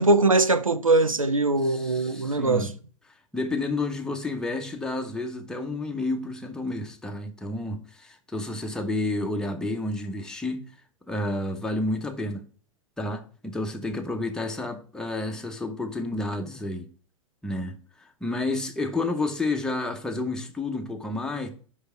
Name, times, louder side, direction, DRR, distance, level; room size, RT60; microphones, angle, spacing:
voice 1, 0.0-2.7, right 2 dB, 90° right, 0.6 m, -21 dB
voice 2, 1.6-2.7 3.3-10.7 11.1-12.4 13.0-16.9 17.4-21.5, left 2 dB, 5° left, 1.0 m, -30 dB
5.5 x 5.1 x 5.9 m
figure-of-eight pair, 95°, 17 cm